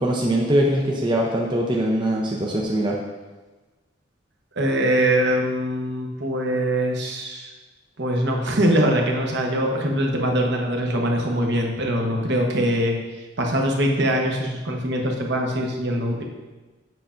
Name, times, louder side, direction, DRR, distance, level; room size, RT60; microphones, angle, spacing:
voice 1, 0.0-3.0, right 1 dB, 25° right, -1 dB, 0.5 m, -22 dB
voice 2, 4.6-7.5 8.0-13.0 13.4-16.2, right 1 dB, 60° right, 1 dB, 0.9 m, -22 dB
7.7 x 5.6 x 2.5 m, 1.2 s
head